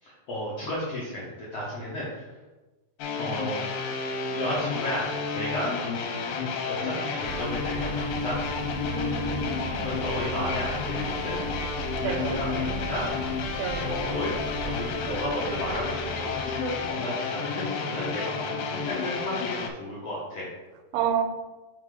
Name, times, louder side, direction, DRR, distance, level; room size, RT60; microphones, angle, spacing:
voice 1, 0.0-2.3 3.2-3.6 4.3-5.7 6.6-8.4 9.8-11.5 11.8-13.1 13.8-20.5, left 1 dB, 65° left, -7 dB, 1.5 m, -33 dB
sound 1, 3.0-19.7, left 5 dB, 85° left, 2.5 m, -31 dB
sound 2, 7.2-16.9, right 3 dB, 40° right, 2.1 m, -37 dB
voice 2, 8.8-9.9 12.0-12.4 13.6-13.9 20.9-21.2, right 8 dB, 90° right, 6 dB, 2.5 m, -30 dB
5.2 x 4.0 x 4.8 m, 1.2 s
omnidirectional pair, 4.2 m